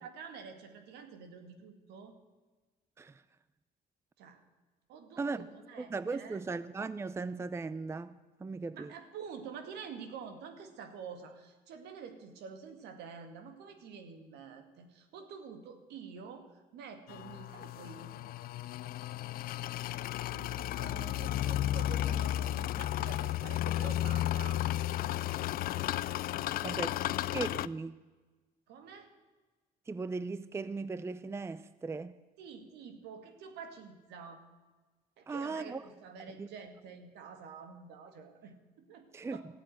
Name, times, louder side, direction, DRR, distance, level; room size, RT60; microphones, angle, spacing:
voice 1, 0.0-2.2 4.2-4.4 4.9-6.4 8.7-18.2 19.5-19.7 20.3-24.6 26.4-27.1 28.7-29.1 32.4-34.4 35.2-39.5, right 6 dB, 80° right, 2.2 m, -48 dB
voice 2, 5.8-8.9 26.6-28.0 29.9-32.1 35.3-35.8 36.4-36.5 39.1-39.4, right 4 dB, 15° right, 0.5 m, -38 dB
sound 1, 17.1-27.7, left 13 dB, 60° left, 0.4 m, -33 dB
14.0 x 8.7 x 9.3 m
cardioid pair, 110°, 17 cm